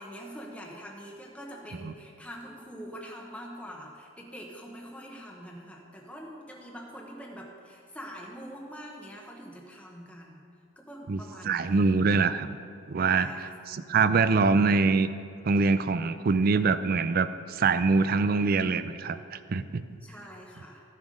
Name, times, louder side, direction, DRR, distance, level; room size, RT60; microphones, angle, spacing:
voice 1, 0.0-10.5 10.8-12.1 12.9-14.4 20.0-20.8, equal, 5° left, -1 dB, 1.0 m, -44 dB
voice 2, 11.1-12.5 12.9-15.1 15.4-19.8, right 4 dB, 45° right, 13 dB, 0.4 m, -24 dB
13.5 x 7.5 x 5.1 m, 2.4 s
head